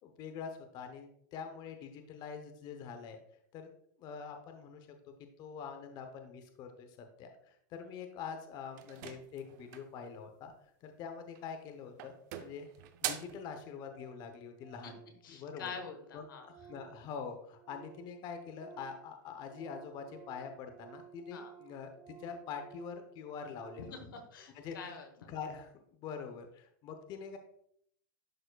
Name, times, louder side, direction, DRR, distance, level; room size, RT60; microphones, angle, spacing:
voice 1, 0.0-3.2 3.5-3.7 4.0-4.9 5.4-10.5 10.8-12.1 12.4-12.7 13.0-15.7 16.1-24.0 24.5-24.8 25.3-27.4, left 6 dB, 40° left, 6 dB, 0.9 m, -45 dB
sound 1, 8.8-10.0 11.2-11.6 12.0-13.4, right 11 dB, 60° right, 0.7 m, -42 dB
Organ, 12.9-13.0 13.2-13.3 13.5-13.6 13.9-14.3 14.6-18.2 18.4-24.1, right 9 dB, 40° right, 2.6 m, -56 dB
voice 2, 15.2-16.5 21.3-21.5 23.8-25.3, left 5 dB, 90° left, 6 dB, 1.2 m, -46 dB
11.0 x 4.3 x 2.3 m, 0.68 s
supercardioid pair, 125°, 11 cm